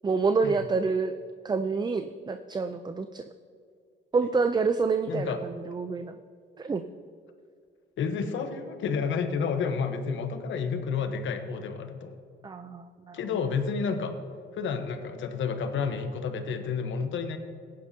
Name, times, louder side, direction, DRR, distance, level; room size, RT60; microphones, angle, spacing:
voice 1, 0.0-1.1 1.4-3.2 4.1-6.2 6.6-6.8 12.4-13.2, right 4 dB, 20° right, 9 dB, 0.4 m, -27 dB
voice 2, 5.1-5.4 8.0-12.2 13.1-14.2 14.5-17.4, left 5 dB, 75° left, 7 dB, 1.1 m, -30 dB
15.0 x 10.5 x 2.8 m, 2.2 s
cardioid pair, 90°, 20 cm